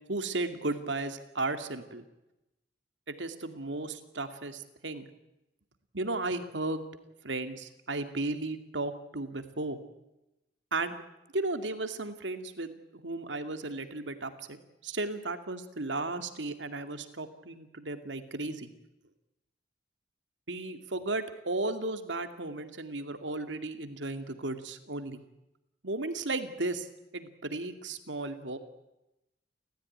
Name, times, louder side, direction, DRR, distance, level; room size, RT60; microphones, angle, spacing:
voice 1, 0.1-2.1 3.1-5.1 5.9-6.9 7.2-9.8 10.7-11.0 11.3-18.7 20.5-25.2 25.8-28.6, right 2 dB, 90° right, 9 dB, 2.3 m, -35 dB
30.0 x 14.5 x 9.8 m, 0.95 s
head